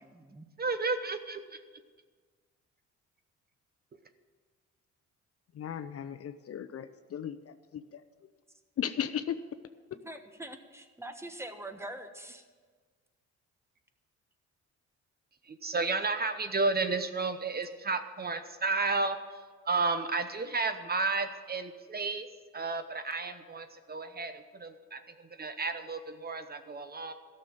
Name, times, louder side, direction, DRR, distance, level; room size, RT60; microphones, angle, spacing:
voice 1, 0.0-0.5 10.0-12.4, right 1 dB, 10° right, 7 dB, 1.2 m, -44 dB
voice 2, 0.6-1.6 15.5-19.2 19.7-22.3 22.5-25.0 25.3-27.1, right 3 dB, 30° right, 9 dB, 0.9 m, -32 dB
voice 3, 5.6-8.0 8.8-9.4, left 9 dB, 50° left, 11 dB, 0.7 m, -36 dB
13.0 x 6.8 x 8.9 m, 1.5 s
cardioid pair, 90°, 30 cm